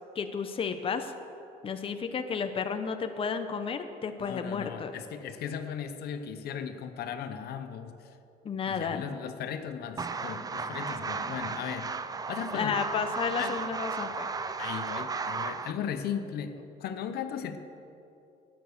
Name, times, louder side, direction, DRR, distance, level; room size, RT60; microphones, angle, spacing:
voice 1, 0.1-1.1 1.6-4.9 8.4-9.0 12.5-14.3, left 6 dB, 35° left, 7 dB, 0.8 m, -32 dB
voice 2, 4.2-7.9 8.7-12.0 12.3-12.9 13.4-13.6 14.6-17.6, left 8 dB, 70° left, 9 dB, 0.9 m, -37 dB
sound 1, 10.0-15.7, right 4 dB, 20° right, 0.5 m, -35 dB
12.5 x 9.2 x 6.6 m, 2.8 s
cardioid pair, 110°, 17 cm